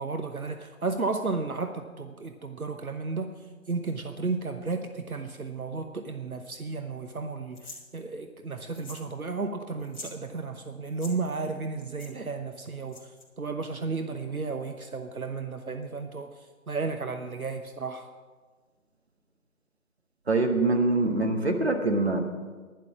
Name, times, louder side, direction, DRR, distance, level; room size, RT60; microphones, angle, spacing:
voice 1, 0.0-18.1, right 4 dB, 80° right, 7 dB, 1.0 m, -33 dB
sound 1, 7.5-7.8 8.7-9.1 9.4-9.5 9.8-10.2 10.9-11.1 12.0-12.1 12.9-13.2, left 2 dB, 30° left, 2.5 m, -44 dB
voice 2, 20.3-22.2, right 2 dB, 50° right, 4 dB, 1.7 m, -24 dB
11.5 x 10.5 x 6.1 m, 1.4 s
figure-of-eight pair, 160°, 42 cm